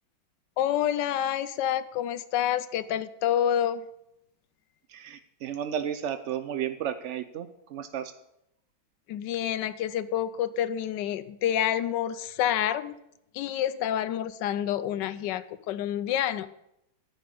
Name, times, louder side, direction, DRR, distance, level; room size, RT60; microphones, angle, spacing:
voice 1, 0.6-3.9 9.1-13.0 13.3-16.5, left 10 dB, 80° left, 14 dB, 1.2 m, -28 dB
voice 2, 4.9-8.1, right 9 dB, 80° right, 10 dB, 0.6 m, -33 dB
9.8 x 5.7 x 8.5 m, 0.82 s
omnidirectional pair, 1.9 m